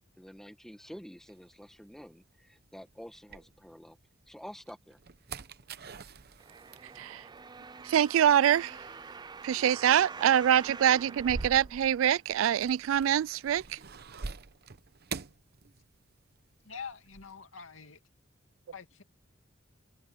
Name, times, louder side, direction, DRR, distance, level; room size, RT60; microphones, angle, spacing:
voice 1, 0.2-4.0 4.3-5.0, equal, ahead, 1.7 m, -48 dB
sound 1, 1.3-4.0 4.5-16.3 16.5-17.3, right 4 dB, 55° right, 0.8 m, -46 dB
sound 2, 6.4-12.3 12.9-13.0, right 4 dB, 20° right, 0.5 m, -46 dB
voice 2, 7.8-8.8 9.4-13.8, right 10 dB, 85° right, 0.3 m, -25 dB
voice 3, 16.6-18.0 18.7-19.0, left 6 dB, 85° left, 2.4 m, -45 dB
head